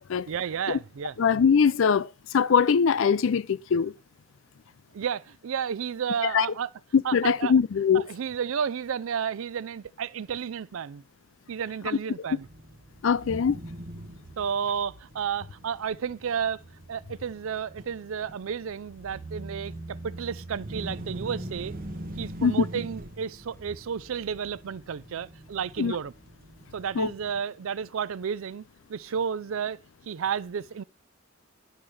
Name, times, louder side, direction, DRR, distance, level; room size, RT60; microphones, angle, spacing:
voice 1, 0.3-1.2 4.9-6.7 7.0-7.5 7.9-11.0 11.5-12.5 14.4-16.6 16.9-21.7 22.1-26.1 26.7-28.6 28.9-30.8, right 7 dB, 65° right, 0.4 m, -32 dB
voice 2, 1.2-2.1 2.3-3.9 6.3-6.5 6.9-8.0 13.0-13.6 22.4-22.6 25.8-25.9 27.0-27.1, left 6 dB, 60° left, 0.4 m, -22 dB
sound 1, 12.4-27.4, right 1 dB, 40° right, 1.0 m, -42 dB
10.5 x 4.5 x 6.3 m
head